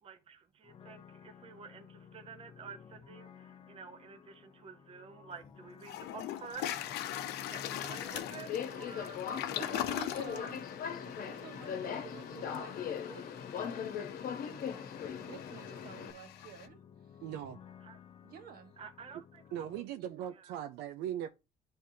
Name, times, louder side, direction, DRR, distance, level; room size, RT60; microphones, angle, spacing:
voice 1, 0.0-9.2 9.5-10.2 17.8-18.0 18.8-19.4 20.3-20.5, right 6 dB, 35° right, 0.7 m, -50 dB
sound 1, 0.6-19.8, left 7 dB, 35° left, 0.5 m, -56 dB
Toilet flush, 5.3-5.4 5.8-16.7, left 12 dB, 80° left, 0.6 m, -42 dB
Subway metro underground, 6.5-16.1, left 7 dB, 55° left, 0.9 m, -40 dB
voice 2, 9.6-10.6 11.0-14.0 14.3-16.8 18.2-18.7 20.1-20.2, right 7 dB, 60° right, 1.3 m, -51 dB
voice 3, 17.2-17.6 19.5-21.3, right 10 dB, 90° right, 0.5 m, -39 dB
10.0 x 3.5 x 2.7 m
cardioid pair, 110°, 17 cm